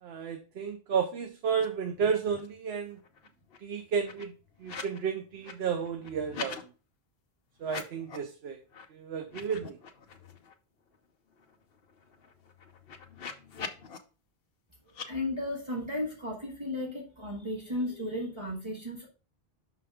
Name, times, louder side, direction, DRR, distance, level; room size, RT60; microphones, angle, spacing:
voice 1, 0.0-3.0 3.6-6.7 7.6-8.6 8.9-9.8, right 6 dB, 90° right, 6 dB, 1.0 m, -32 dB
sound 1, 1.5-1.7 1.9-2.6 2.9-5.0 5.3-6.6 7.6-8.3 8.7-8.8 9.2-10.5 10.9-11.0 11.3-14.0 14.9-15.1, left 5 dB, 70° left, 1.0 m, -44 dB
voice 2, 15.1-19.1, left 1 dB, 30° right, -3 dB, 1.8 m, -34 dB
6.0 x 5.8 x 3.5 m, 0.34 s
omnidirectional pair, 1.0 m